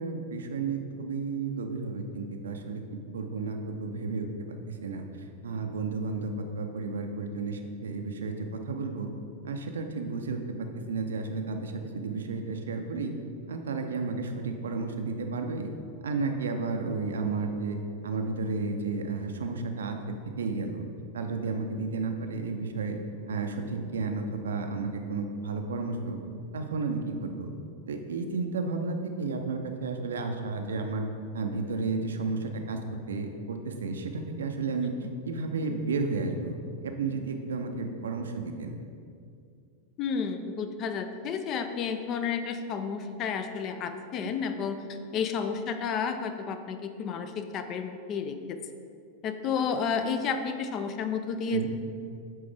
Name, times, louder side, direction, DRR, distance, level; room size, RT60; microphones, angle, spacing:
voice 1, 0.0-4.3 4.7-5.0 5.4-9.1 9.4-13.1 13.5-15.7 16.0-17.8 18.0-20.8 21.1-23.0 23.3-26.2 26.5-27.5 27.9-31.1 31.3-32.8 33.1-34.9 35.2-36.6 36.8-38.8 44.2-44.3 51.5-51.7, right 4 dB, 65° right, 5 dB, 0.5 m, -32 dB
voice 2, 40.0-44.8 45.1-48.6 49.2-51.7, left 6 dB, 35° left, 8 dB, 0.4 m, -31 dB
8.6 x 3.4 x 3.4 m, 2.4 s
figure-of-eight pair, 90°, 0 cm